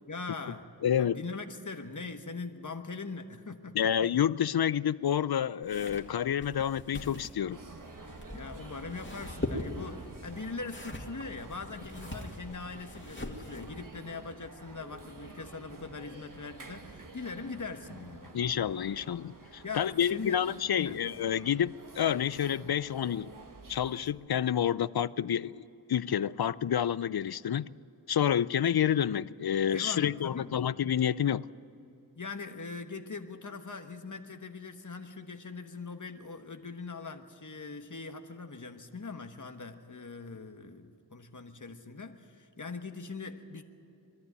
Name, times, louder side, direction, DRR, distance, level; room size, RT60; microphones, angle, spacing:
voice 1, 0.1-0.7 1.0-3.9 8.3-18.4 19.6-20.5 20.8-21.0 29.7-30.7 32.2-43.6, left 4 dB, 45° left, 1.3 m, -41 dB
voice 2, 0.8-1.2 3.7-7.6 18.3-23.3 23.7-27.7 28.1-31.5, left 9 dB, 65° left, 0.5 m, -29 dB
sound 1, 5.6-13.9, left 1 dB, 30° left, 2.1 m, -42 dB
sound 2, 7.5-24.1, right 3 dB, 50° right, 1.4 m, -49 dB
22.5 x 14.0 x 9.2 m
wide cardioid pair, 55°, 41 cm